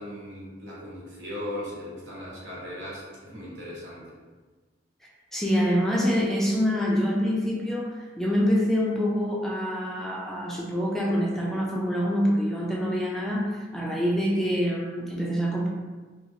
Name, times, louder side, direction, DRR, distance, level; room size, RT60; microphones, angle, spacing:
voice 1, 0.0-4.1, left 1 dB, 80° right, -7 dB, 1.1 m, -38 dB
voice 2, 5.3-15.7, equal, ahead, -4 dB, 0.4 m, -26 dB
2.9 x 2.4 x 2.7 m, 1.3 s
head